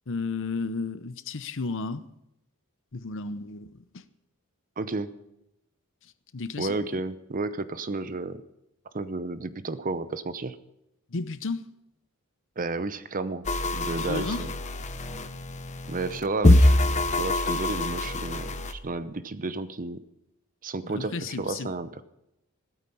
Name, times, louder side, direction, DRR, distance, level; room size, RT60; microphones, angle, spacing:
voice 1, 0.1-2.0 2.9-4.0 6.3-7.0 11.1-11.7 13.9-14.5 20.8-21.7, left 4 dB, 60° left, 0.8 m, -33 dB
voice 2, 4.8-5.1 6.6-8.4 8.9-10.6 12.6-14.5 15.9-16.8 17.1-20.0 20.6-22.0, right 3 dB, 40° right, 0.8 m, -32 dB
sound 1, 13.4-18.7, left 1 dB, 35° left, 0.9 m, -24 dB
16.0 x 13.0 x 5.5 m
head